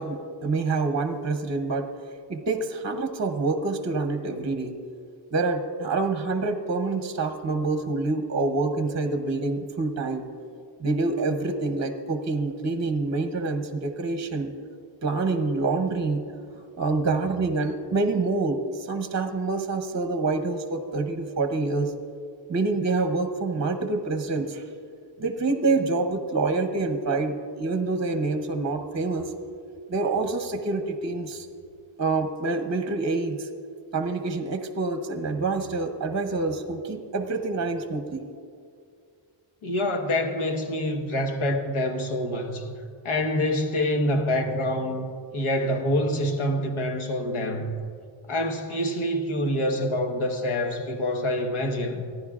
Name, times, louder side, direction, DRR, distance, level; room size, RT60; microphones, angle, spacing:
voice 1, 0.0-1.9 2.3-4.8 5.3-10.3 10.8-14.5 15.0-16.2 16.8-21.9 22.5-24.6 25.2-29.3 29.9-31.5 32.0-33.5 33.9-38.3, right 3 dB, 35° right, 7 dB, 0.8 m, -26 dB
voice 2, 39.6-42.7 43.0-45.1 45.3-47.7 48.3-52.1, left 1 dB, 75° left, 4 dB, 1.4 m, -26 dB
30.0 x 11.0 x 2.4 m, 2.3 s
wide cardioid pair, 115°, 50 cm